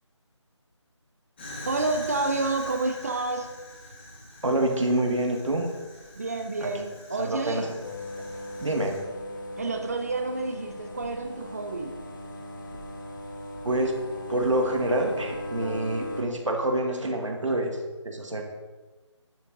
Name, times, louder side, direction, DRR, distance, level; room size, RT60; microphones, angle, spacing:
Fire, 1.4-9.0, left 1 dB, 20° left, 2.3 m, -44 dB
voice 1, 1.7-3.5 6.1-7.7 9.6-11.9, right 3 dB, 30° right, 5 dB, 0.7 m, -29 dB
voice 2, 4.4-5.7 6.6-6.7 7.2-7.8 8.6-9.0 13.6-14.0 14.3-17.8 18.0-18.4, right 1 dB, 75° right, 2 dB, 1.9 m, -26 dB
sound 1, 7.8-16.2, left 1 dB, 40° left, 1.3 m, -38 dB
11.5 x 7.9 x 3.9 m, 1.3 s
figure-of-eight pair, 170°, 16 cm